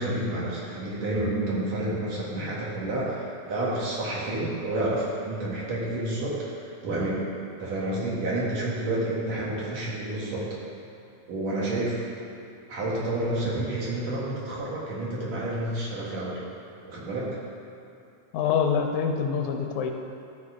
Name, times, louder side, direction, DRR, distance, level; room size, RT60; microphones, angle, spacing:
voice 1, 0.0-6.4 6.8-7.2 7.6-10.5 11.3-12.2 12.7-16.3 16.8-17.3, right 1 dB, 65° right, -6 dB, 2.9 m, -29 dB
voice 2, 18.3-19.9, left 6 dB, 90° left, 4 dB, 2.1 m, -25 dB
12.5 x 4.6 x 4.9 m, 2.7 s
omnidirectional pair, 3.4 m